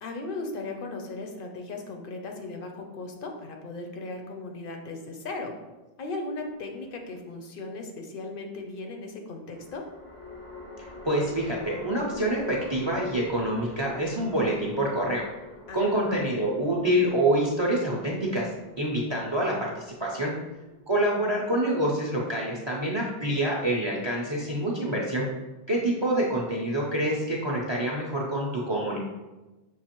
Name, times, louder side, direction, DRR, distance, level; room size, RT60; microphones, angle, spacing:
voice 1, 0.0-5.5 6.0-9.8 15.7-16.2 26.4-26.5, left 3 dB, 60° left, 3 dB, 0.7 m, -37 dB
sound 1, 6.3-7.2 9.5-20.8, left 3 dB, 85° left, 1.7 m, -45 dB
voice 2, 11.0-15.2 15.7-18.5 18.8-20.3 20.9-25.3 25.7-29.0, right 1 dB, 35° right, -3 dB, 0.5 m, -26 dB
6.3 x 2.5 x 2.9 m, 1.1 s
omnidirectional pair, 1.1 m